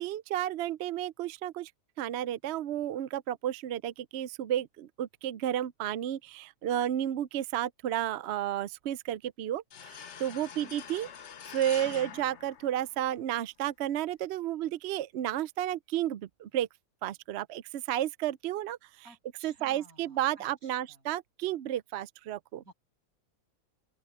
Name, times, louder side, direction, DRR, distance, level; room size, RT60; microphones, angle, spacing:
voice 1, 0.0-1.7 2.0-11.1 11.5-16.7 17.0-18.8 19.4-22.6, right 12 dB, 65° right, 0.7 m, -32 dB
sound 1, 9.7-13.3, left 8 dB, 55° left, 1.2 m, -45 dB
voice 2, 10.3-10.8 11.8-12.2 19.0-21.0 22.6-22.7, right 1 dB, 85° right, 7.4 m, -56 dB
open air
omnidirectional pair, 1.5 m